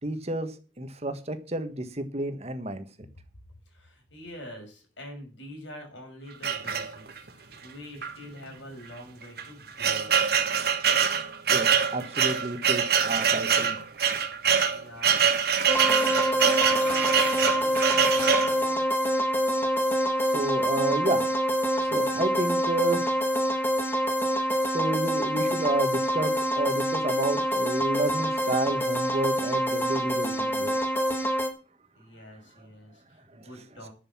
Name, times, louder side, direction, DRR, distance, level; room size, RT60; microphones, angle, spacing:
voice 1, 0.0-2.9 11.5-13.8 20.2-21.3 21.8-23.2 24.7-30.7 33.3-33.5, right 2 dB, 35° right, 1.5 m, -30 dB
voice 2, 3.7-10.1 14.7-18.9 31.9-33.9, equal, 80° left, 6.1 m, -45 dB
sound 1, 6.4-7.3 8.0-8.1 8.4-8.5 9.2-18.6, right 7 dB, 55° right, 1.6 m, -24 dB
sound 2, 15.7-31.5, equal, 10° left, 1.5 m, -26 dB
11.0 x 6.8 x 7.2 m
head